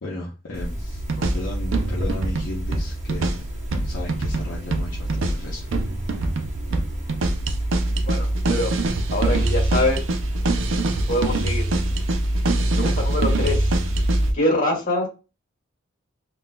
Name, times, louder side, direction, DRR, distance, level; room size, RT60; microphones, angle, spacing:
voice 1, 0.0-1.0 1.3-3.5 3.8-5.7, left 1 dB, 65° left, -4 dB, 0.7 m, -35 dB
sound 1, 0.5-14.3, right 1 dB, 35° right, 0.9 m, -26 dB
sound 2, 0.9-14.3, right 2 dB, 70° right, 0.5 m, -26 dB
voice 2, 8.1-8.7 9.1-10.0 11.1-11.6 12.7-13.7 14.3-15.1, left 1 dB, 40° left, -2 dB, 1.6 m, -24 dB
3.8 x 2.4 x 2.2 m, 0.31 s
head